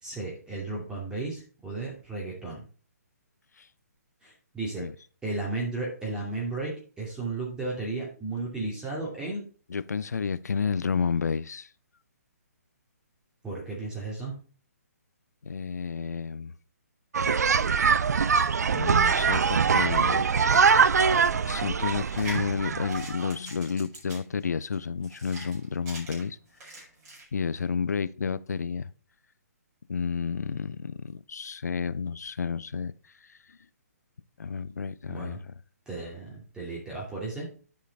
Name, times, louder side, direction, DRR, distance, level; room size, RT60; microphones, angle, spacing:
voice 1, 0.0-2.6 4.2-4.8 5.2-9.4 13.4-14.3 35.1-35.4 35.9-37.5, right 3 dB, 10° right, 2.6 m, -34 dB
voice 2, 9.7-11.7 15.4-16.5 18.7-20.2 21.4-26.4 27.3-28.9 29.9-32.9 33.3-33.6 34.4-35.5, left 5 dB, 80° left, 0.6 m, -31 dB
sound 1, 17.1-23.3, right 6 dB, 75° right, 0.5 m, -23 dB
sound 2, 22.0-27.2, right 1 dB, 25° right, 5.1 m, -43 dB
10.5 x 5.1 x 4.1 m
hypercardioid pair, 145°, 9 cm